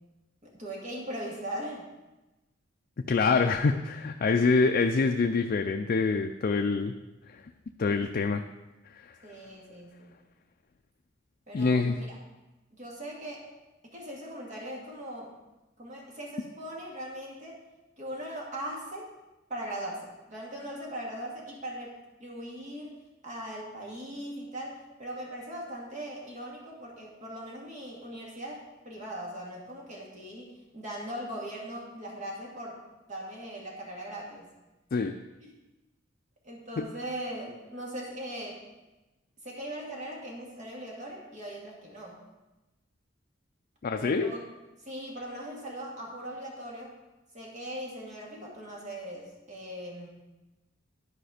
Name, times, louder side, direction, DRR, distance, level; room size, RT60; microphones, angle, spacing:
voice 1, 0.4-1.9 9.2-10.2 11.5-12.1 12.8-13.5 13.8-15.3 15.8-17.6 18.0-19.1 19.5-22.9 23.2-32.8 33.1-34.5 35.4-35.5 36.4-38.6 39.4-42.2 43.9-44.4 44.8-46.9 47.3-50.1, right 1 dB, 40° right, -3 dB, 2.2 m, -40 dB
voice 2, 3.1-6.9 7.3-7.4 7.8-8.4 11.5-12.0 34.9-35.2 36.8-36.9 43.8-44.3, left 4 dB, 50° left, 5 dB, 0.4 m, -25 dB
11.5 x 5.1 x 4.9 m, 1.1 s
head